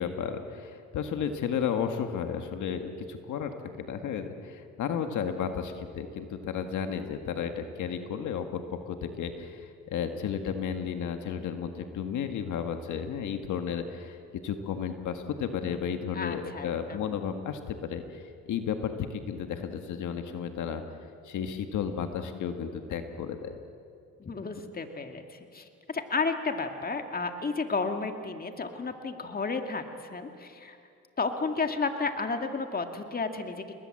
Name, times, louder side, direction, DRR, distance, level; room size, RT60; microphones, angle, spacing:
voice 1, 0.0-14.2 14.4-20.8 21.2-23.5, left 7 dB, 75° left, 6 dB, 1.8 m, -33 dB
voice 2, 16.1-17.0 24.2-29.8 30.1-30.8 31.2-33.6, left 4 dB, 30° left, 5 dB, 2.2 m, -32 dB
29.0 x 21.0 x 7.9 m, 2.4 s
cardioid pair, 90°, 30 cm